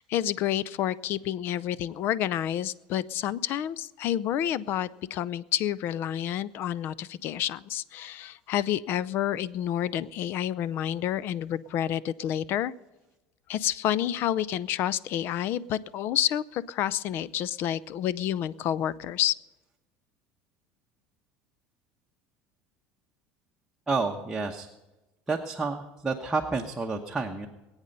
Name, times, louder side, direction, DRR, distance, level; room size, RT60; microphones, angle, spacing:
voice 1, 0.0-12.7 13.5-19.3, left 11 dB, 50° left, 20 dB, 0.5 m, -29 dB
voice 2, 23.9-24.7 25.3-27.5, right 3 dB, 10° right, 1 dB, 1.1 m, -30 dB
21.5 x 8.9 x 5.4 m, 1.1 s
supercardioid pair, 130°, 5 cm